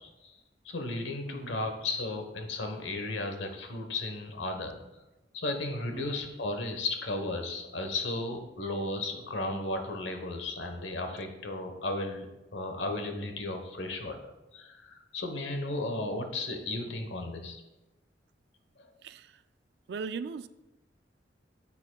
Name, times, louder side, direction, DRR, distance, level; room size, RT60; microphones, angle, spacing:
voice 1, 0.6-4.8 5.3-14.2 14.5-17.6 18.8-18.9, left 2 dB, 80° left, 5 dB, 1.0 m, -34 dB
voice 2, 1.3-1.6 5.9-6.2 19.0-19.4 19.9-20.5, right 5 dB, 60° right, 14 dB, 0.3 m, -39 dB
10.0 x 7.1 x 2.3 m, 1.0 s
head